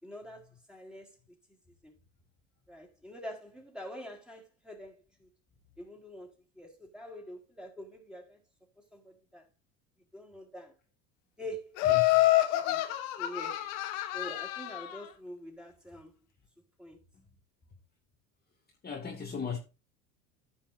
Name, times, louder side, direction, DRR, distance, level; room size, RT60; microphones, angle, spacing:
voice 1, 0.0-0.4 0.7-1.1 1.8-1.9 2.7-5.3 5.8-8.4 8.9-9.4 10.1-10.7 11.4-11.7 12.2-12.9 13.2-13.7 14.1-16.1 16.8-17.0, equal, ahead, 4.2 m, -45 dB
Laughter, 11.8-15.0, left 16 dB, 60° left, 1.8 m, -27 dB
voice 2, 11.9-12.2 18.8-19.6, left 6 dB, 20° left, 2.3 m, -37 dB
15.0 x 5.7 x 2.7 m
hypercardioid pair, 80°, 42 cm